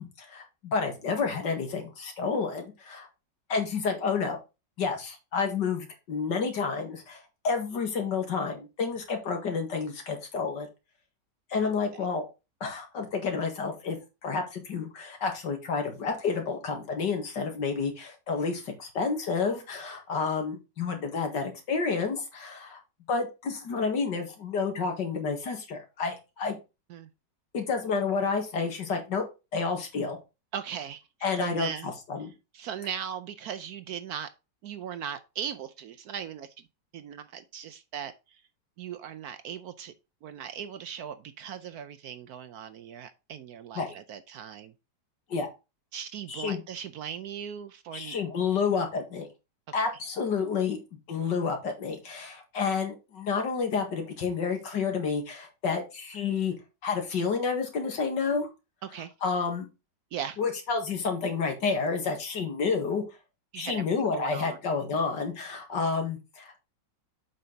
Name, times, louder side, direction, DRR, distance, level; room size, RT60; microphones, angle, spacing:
voice 1, 0.0-3.1 3.5-4.4 4.8-10.7 11.5-12.3 12.6-14.0 14.2-22.8 23.1-26.6 27.5-29.2 29.5-30.2 31.2-32.3 43.8-43.9 45.3-45.5 46.3-46.6 47.9-49.3 49.7-50.8 51.1-56.5 56.8-58.5 59.2-59.7 60.4-63.0 63.6-66.6, left 5 dB, 75° left, 2.4 m, -30 dB
voice 2, 11.6-12.1 26.9-27.1 30.5-31.0 31.4-31.9 32.5-34.3 34.6-36.5 36.9-38.4 38.8-39.9 40.2-44.7 45.9-48.2 58.8-59.1 60.1-60.4 63.5-64.6, right 8 dB, 70° right, 1.0 m, -38 dB
7.7 x 5.6 x 4.0 m
omnidirectional pair, 1.9 m